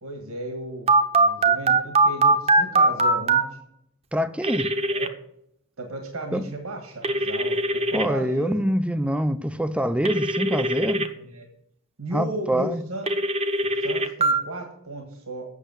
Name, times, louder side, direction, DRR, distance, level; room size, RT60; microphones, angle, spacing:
voice 1, 0.0-3.4 4.9-5.1 5.8-8.6 11.1-11.5 12.0-13.0 13.8-15.4, right 1 dB, 75° right, 1.7 m, -35 dB
Telephone, 0.9-3.4 4.4-5.1 7.0-8.1 10.1-11.1 13.1-14.3, right 2 dB, 30° right, 0.9 m, -21 dB
voice 2, 4.1-4.7 6.3-6.4 7.9-11.1 12.1-12.8, equal, 5° right, 0.5 m, -25 dB
8.2 x 6.7 x 8.0 m
head